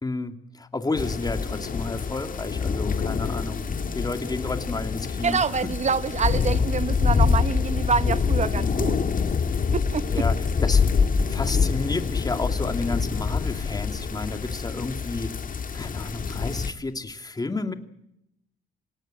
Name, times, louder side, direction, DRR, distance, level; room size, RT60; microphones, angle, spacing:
voice 1, 0.0-3.7 3.9-5.4 6.9-7.0 8.5-8.8 10.1-10.3 10.6-10.8 11.3-15.3 15.7-17.7, left 3 dB, 20° left, 2.6 m, -31 dB
sound 1, 1.0-16.7, left 5 dB, 45° left, 2.0 m, -25 dB
voice 2, 5.2-9.0 9.7-10.0, right 5 dB, 35° right, 1.3 m, -26 dB
26.5 x 18.5 x 9.0 m
cardioid pair, 90°, 20 cm